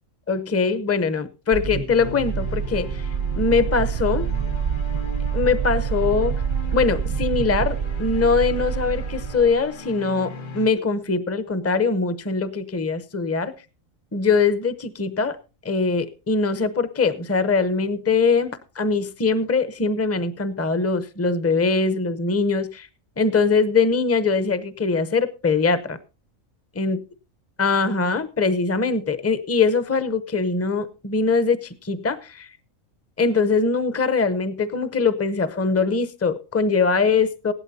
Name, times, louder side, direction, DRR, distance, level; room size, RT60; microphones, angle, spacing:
voice 1, 0.3-3.1 3.4-4.3 5.3-6.3 6.7-13.5 14.1-15.4 15.6-22.9 23.2-26.0 26.7-27.0 27.6-32.5 33.2-37.5, left 4 dB, 15° left, 12 dB, 0.5 m, -22 dB
sound 1, 1.5-9.7, right 7 dB, 45° right, 0.5 m, -26 dB
sound 2, 2.0-10.7, left 2 dB, 70° left, 1.5 m, -38 dB
16.5 x 12.0 x 2.7 m, 0.31 s
omnidirectional pair, 1.4 m